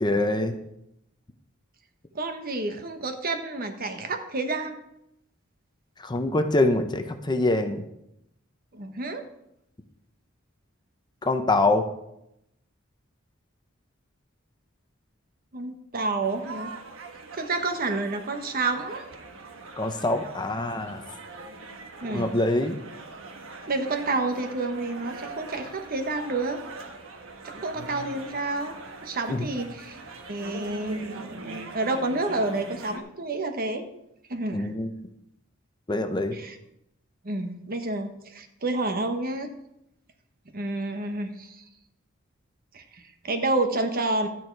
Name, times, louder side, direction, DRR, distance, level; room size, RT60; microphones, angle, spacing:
voice 1, 0.0-0.6 6.0-7.8 11.2-11.9 19.8-21.0 22.1-22.8 29.3-29.5 34.5-34.9 35.9-36.4, left 2 dB, 20° left, 7 dB, 0.8 m, -24 dB
voice 2, 2.1-4.8 8.7-9.2 15.5-16.7 17.3-19.0 22.0-22.4 23.7-26.6 27.4-28.7 29.0-30.0 30.3-33.9 34.3-34.7 36.3-36.6 37.2-39.5 40.5-41.6 42.7-44.3, right 2 dB, 45° right, 6 dB, 1.2 m, -29 dB
sound 1, 16.2-33.0, right 3 dB, 75° right, 1.4 m, -42 dB
12.5 x 9.1 x 4.6 m, 0.82 s
head